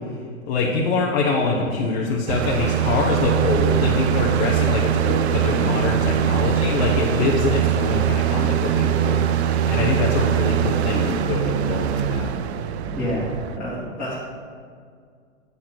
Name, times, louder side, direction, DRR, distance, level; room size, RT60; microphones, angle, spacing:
voice 1, 0.5-9.2 9.5-12.3, left 3 dB, 50° left, -2 dB, 1.1 m, -24 dB
sound 1, 2.3-13.6, right 10 dB, 55° right, 0.5 m, -22 dB
voice 2, 12.9-13.3 13.6-14.3, equal, 5° left, -14 dB, 2.1 m, -28 dB
8.4 x 4.2 x 6.0 m, 2.1 s
hypercardioid pair, 135°, 39 cm